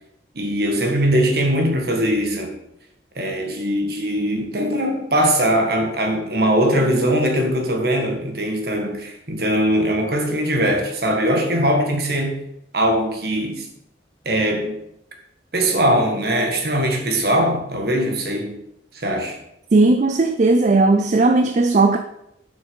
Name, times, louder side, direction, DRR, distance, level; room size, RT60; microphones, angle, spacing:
voice 1, 0.3-2.5 3.1-12.4 12.7-13.7 14.2-14.8 15.5-18.6 18.9-19.4, equal, 60° right, 1.7 m, -21 dB
voice 2, 19.7-22.0, right 3 dB, 40° right, 0.4 m, -16 dB
7.4 x 6.1 x 5.4 m
head